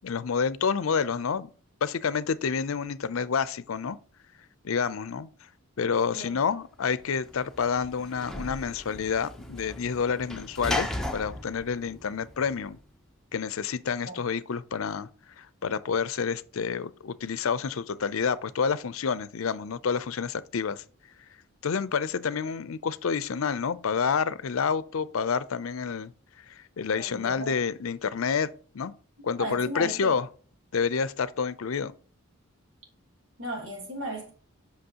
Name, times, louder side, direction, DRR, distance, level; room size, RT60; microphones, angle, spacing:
voice 1, 0.0-1.5 1.8-4.0 4.6-5.3 5.8-12.8 13.3-15.1 15.4-20.8 21.6-26.1 26.5-28.5 28.7-28.9 29.2-30.3 30.7-31.9, left 6 dB, 70° left, 0.5 m, -28 dB
Sliding door / Slam, 6.9-12.8, left 1 dB, ahead, 0.7 m, -36 dB
voice 2, 26.9-27.5 29.2-30.2 33.4-34.3, right 1 dB, 85° right, 3.0 m, -36 dB
7.9 x 5.8 x 2.9 m
head